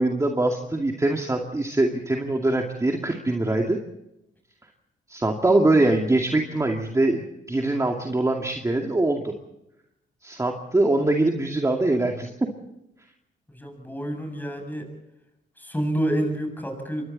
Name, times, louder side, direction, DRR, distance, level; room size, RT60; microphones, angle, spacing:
voice 1, 0.0-3.8 5.1-9.3 10.2-12.3, right 2 dB, 15° right, 2 dB, 2.4 m, -23 dB
voice 2, 13.5-14.9 15.6-17.1, right 1 dB, 10° left, 5 dB, 7.7 m, -28 dB
27.5 x 24.0 x 4.2 m, 0.86 s
cardioid pair, 90°, 20 cm